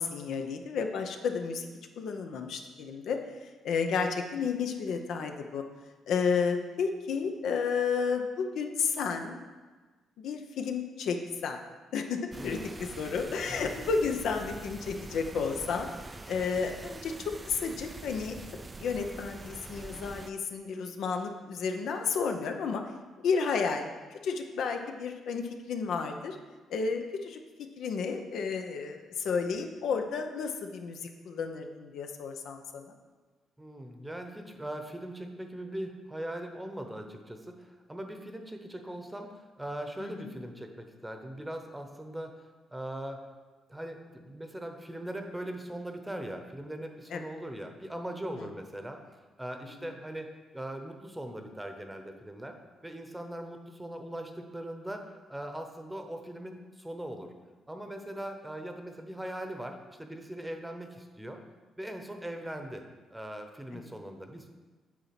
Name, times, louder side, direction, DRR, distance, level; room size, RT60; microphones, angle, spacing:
voice 1, 0.0-1.7 2.0-3.2 3.6-5.6 6.1-9.4 10.2-11.6 11.9-15.9 16.3-18.4 18.8-22.8 23.2-26.4 26.7-27.4 27.8-33.0 40.0-40.3 47.1-47.2 63.7-63.8, left 5 dB, 75° left, 5 dB, 0.7 m, -32 dB
sound 1, 12.3-20.3, right 3 dB, 25° right, 0.4 m, -45 dB
voice 2, 12.4-12.7 13.5-13.9 33.6-43.2 43.7-49.0 49.4-55.0 55.3-57.3 57.7-61.4 61.8-62.8 63.1-64.5, right 1 dB, 10° right, 5 dB, 0.9 m, -40 dB
8.5 x 4.0 x 5.9 m, 1.3 s
cardioid pair, 90°, 0 cm